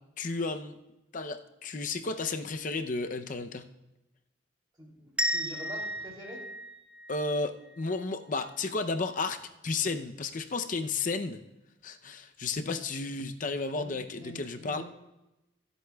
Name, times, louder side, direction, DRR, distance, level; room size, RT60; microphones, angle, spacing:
voice 1, 0.2-0.8 1.1-3.6 7.1-9.4 9.6-11.4 11.8-14.8, left 3 dB, 45° left, 8 dB, 0.6 m, -33 dB
voice 2, 4.8-6.4 13.7-14.8, right 1 dB, 20° right, -3 dB, 3.0 m, -45 dB
sound 1, 5.2-8.0, equal, 5° right, 0.5 m, -34 dB
24.0 x 8.2 x 2.3 m, 0.95 s
head